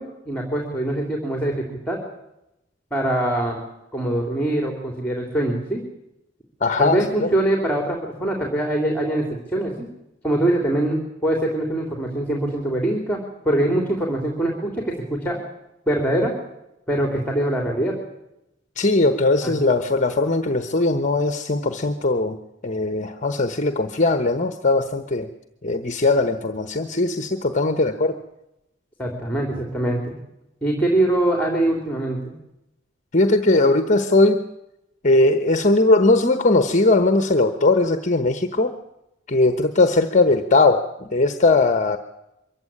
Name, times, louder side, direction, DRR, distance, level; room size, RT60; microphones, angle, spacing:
voice 1, 0.0-2.0 2.9-3.6 3.9-5.8 6.8-9.9 10.2-13.2 13.4-15.4 15.9-16.3 16.9-18.0 19.4-19.5 29.0-30.1 30.6-32.3, right 1 dB, 10° left, 2 dB, 3.3 m, -23 dB
voice 2, 6.6-7.3 18.8-22.4 22.6-25.3 25.6-28.2 33.1-34.4 35.0-38.8 39.3-42.0, left 2 dB, 40° left, 8 dB, 1.1 m, -19 dB
23.5 x 15.0 x 8.8 m, 0.88 s
head